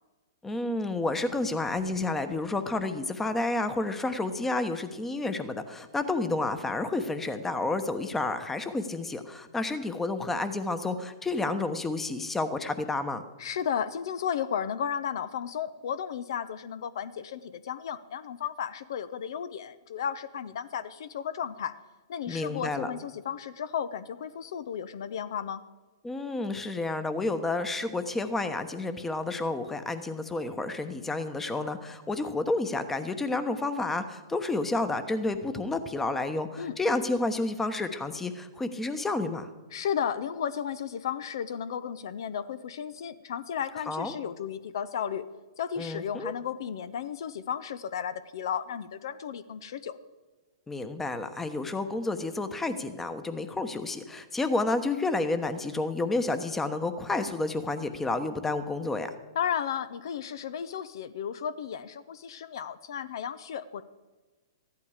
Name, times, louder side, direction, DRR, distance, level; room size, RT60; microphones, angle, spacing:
voice 1, 0.4-13.2 22.3-22.9 26.0-39.5 43.9-44.1 45.8-46.3 50.7-59.1, left 2 dB, 10° left, 9 dB, 1.0 m, -30 dB
voice 2, 13.4-21.7 22.1-25.6 36.6-36.7 39.7-45.2 45.6-50.0 59.3-63.8, left 8 dB, 65° left, 14 dB, 0.7 m, -34 dB
14.5 x 11.5 x 5.0 m, 1.2 s
hypercardioid pair, 125°, 2 cm